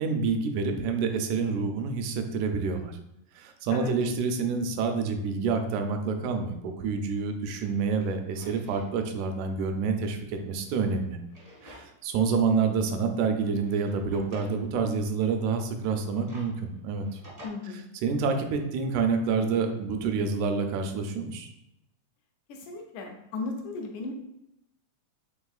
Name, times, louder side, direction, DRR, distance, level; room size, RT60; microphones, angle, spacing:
voice 1, 0.0-3.0 3.4-11.2 11.6-17.2 18.0-21.5, right 5 dB, 85° right, 6 dB, 1.9 m, -28 dB
Drawer open or close, 6.9-7.0 7.5-8.9 9.3-9.4 10.4-12.1 12.5-12.6 13.4-14.6 15.8-17.5, equal, 40° right, 0.5 m, -51 dB
voice 2, 17.4-17.8 22.5-24.1, left 3 dB, 85° left, 2 dB, 2.1 m, -36 dB
5.3 x 3.5 x 2.3 m, 0.84 s
omnidirectional pair, 3.4 m